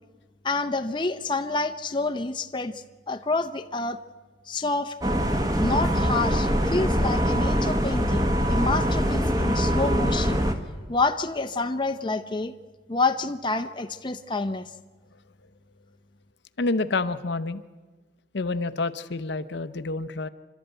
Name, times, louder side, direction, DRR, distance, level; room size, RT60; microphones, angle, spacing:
voice 1, 0.4-4.0 4.5-4.9 5.6-10.4 10.9-12.5 12.9-14.7, left 3 dB, 25° left, 7 dB, 0.6 m, -28 dB
sound 1, 5.0-10.5, equal, 20° right, 1.2 m, -23 dB
voice 2, 16.6-17.6 18.3-20.3, left 3 dB, 60° left, 13 dB, 0.7 m, -28 dB
28.0 x 12.5 x 9.0 m, 1.4 s
head